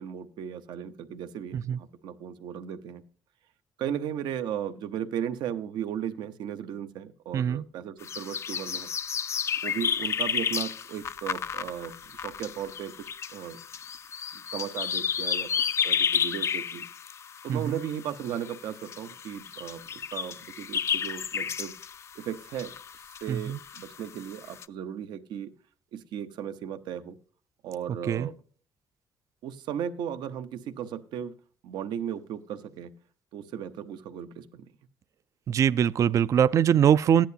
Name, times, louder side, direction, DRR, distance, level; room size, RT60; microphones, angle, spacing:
voice 1, 0.0-3.0 3.8-8.9 9.6-13.6 14.3-15.5 15.8-16.8 17.4-21.7 22.1-22.7 23.2-25.5 25.9-27.2 27.6-28.3 29.4-31.3 31.6-32.9 33.3-34.7, right 9 dB, 80° right, 0.9 m, -36 dB
sound 1, 8.0-24.6, left 7 dB, 40° left, 0.4 m, -32 dB
voice 2, 35.5-37.3, right 9 dB, 45° right, 0.4 m, -22 dB
15.0 x 10.5 x 2.8 m
cardioid pair, 120°, 8 cm